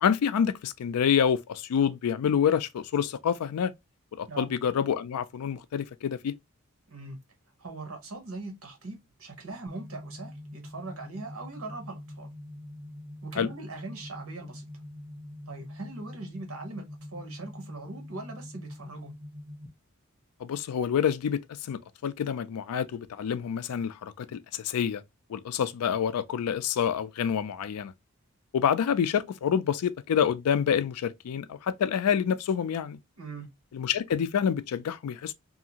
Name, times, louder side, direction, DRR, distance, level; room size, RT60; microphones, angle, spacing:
voice 1, 0.0-3.7 4.2-6.3 13.4-13.5 20.4-25.0 25.3-27.9 28.5-33.0 33.7-35.3, left 8 dB, 90° left, 0.4 m, -27 dB
voice 2, 6.9-7.2 7.6-12.3 13.2-14.6 15.5-16.9 17.1-19.1 33.2-33.5, right 3 dB, 70° right, 1.0 m, -41 dB
sound 1, 9.7-19.7, left 1 dB, 25° right, 0.6 m, -44 dB
2.7 x 2.5 x 2.7 m
head